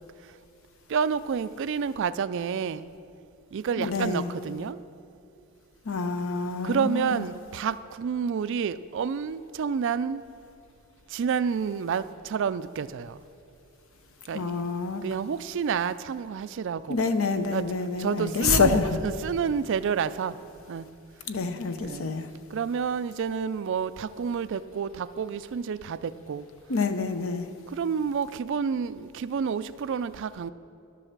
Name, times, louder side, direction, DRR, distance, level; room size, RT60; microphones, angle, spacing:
voice 1, 0.9-2.9 3.5-4.8 6.6-10.2 11.1-13.1 14.3-14.5 15.0-17.0 17.5-17.6 18.0-20.4 20.7-20.8 21.8-22.1 22.5-26.4 27.7-30.5, right 6 dB, 60° right, 15 dB, 0.3 m, -29 dB
voice 2, 3.8-4.3 5.9-7.3 14.3-15.0 16.9-19.0 21.3-22.3 26.7-27.5, left 4 dB, 65° left, 9 dB, 0.7 m, -27 dB
12.0 x 7.6 x 6.5 m, 2.7 s
head